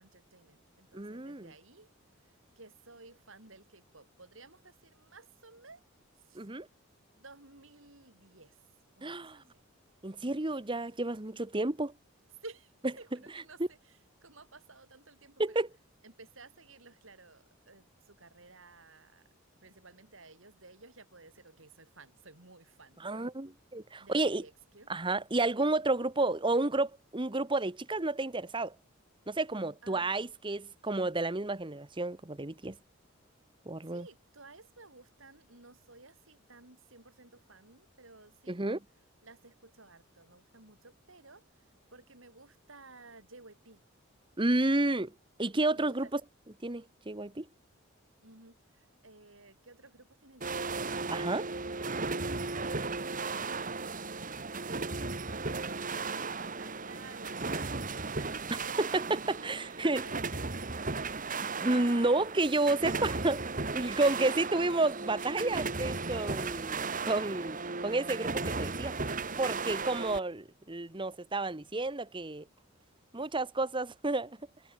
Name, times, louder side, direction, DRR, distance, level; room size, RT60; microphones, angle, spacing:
voice 1, 0.0-1.9 2.2-5.9 6.2-6.5 7.1-8.6 9.0-9.6 12.4-15.6 16.0-19.3 19.6-23.0 24.0-24.9 29.8-30.1 33.8-38.8 39.2-43.8 45.7-46.1 48.2-51.0 52.1-59.4 59.8-61.1, right 3 dB, 65° right, 5.0 m, -55 dB
voice 2, 0.9-1.5 6.3-6.7 9.0-9.4 10.0-11.9 15.4-15.7 23.0-24.4 24.9-28.7 29.3-32.8 33.6-34.1 38.5-38.8 44.4-45.1 45.4-46.2 46.6-47.5 51.1-51.5 58.8-60.0 61.4-63.4 63.7-68.9 69.4-72.4 73.1-74.4, right 2 dB, 25° right, 1.2 m, -31 dB
sound 1, 50.4-70.2, right 4 dB, 40° right, 2.2 m, -36 dB
head